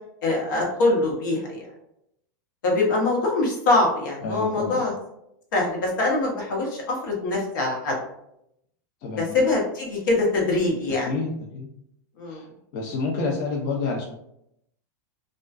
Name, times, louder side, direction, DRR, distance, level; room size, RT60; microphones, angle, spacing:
voice 1, 0.2-1.7 2.6-4.9 5.5-8.0 9.2-11.1 12.2-12.4, left 2 dB, 80° left, -2 dB, 0.9 m, -23 dB
voice 2, 4.2-4.8 9.0-9.3 11.1-11.7 12.3-12.5 12.7-14.0, left 3 dB, 40° left, -1 dB, 0.4 m, -28 dB
2.5 x 2.2 x 2.3 m, 0.78 s
supercardioid pair, 160°, 10 cm